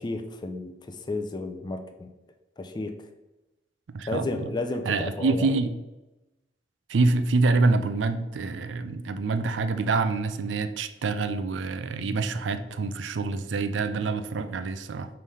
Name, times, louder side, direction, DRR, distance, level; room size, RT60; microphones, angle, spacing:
voice 1, 0.0-2.1 2.6-3.0 4.1-5.5, left 2 dB, 25° left, 6 dB, 0.4 m, -32 dB
voice 2, 3.9-4.4 4.9-5.7 6.9-15.1, right 3 dB, 85° right, 10 dB, 0.4 m, -26 dB
5.5 x 3.3 x 5.5 m, 1.0 s
head